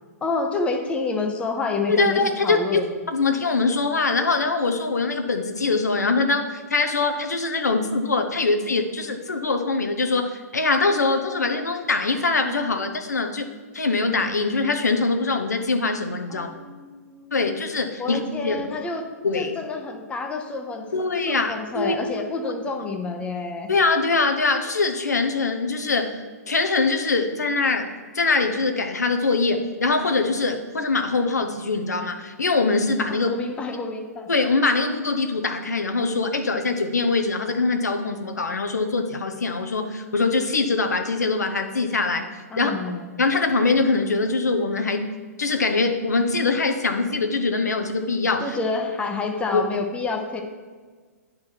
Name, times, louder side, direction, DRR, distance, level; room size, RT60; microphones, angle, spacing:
voice 1, 0.2-2.9 16.3-17.5 18.0-19.0 19.3-20.9 21.3-23.7 33.1-34.3 42.5-43.1 48.4-50.4, left 3 dB, 15° left, 3 dB, 0.8 m, -28 dB
voice 2, 1.9-2.8 3.1-13.4 13.7-16.5 17.3-18.7 19.2-19.5 20.9-21.9 22.4-22.5 23.7-26.2 26.5-33.3 34.3-42.3 42.6-42.7 43.2-45.1 45.4-48.6 49.5-49.6, left 3 dB, 80° left, 6 dB, 0.8 m, -23 dB
9.6 x 3.9 x 4.5 m, 1.5 s
figure-of-eight pair, 115°, 9 cm